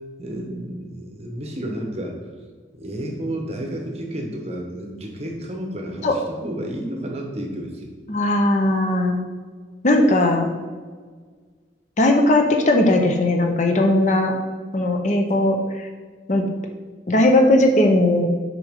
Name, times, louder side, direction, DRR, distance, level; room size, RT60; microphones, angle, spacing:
voice 1, 0.2-2.2 2.7-7.9, right 1 dB, 35° right, 1 dB, 1.0 m, -31 dB
voice 2, 8.1-9.2 9.8-10.5 12.0-14.3 14.7-15.9 16.3-16.4 17.1-18.3, left 1 dB, 45° left, 3 dB, 0.7 m, -18 dB
6.7 x 5.1 x 3.6 m, 1.5 s
head